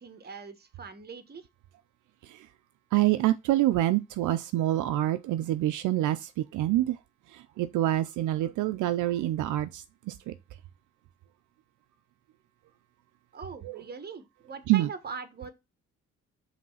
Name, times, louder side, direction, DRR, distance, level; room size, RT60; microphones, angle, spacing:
voice 1, 0.0-1.5 13.3-15.5, right 5 dB, 30° right, 1.2 m, -41 dB
voice 2, 2.9-7.0 7.3-10.3 13.6-13.8 14.7-14.9, right 15 dB, 75° right, 0.5 m, -26 dB
5.1 x 3.3 x 5.5 m
cardioid pair, 90°, 30 cm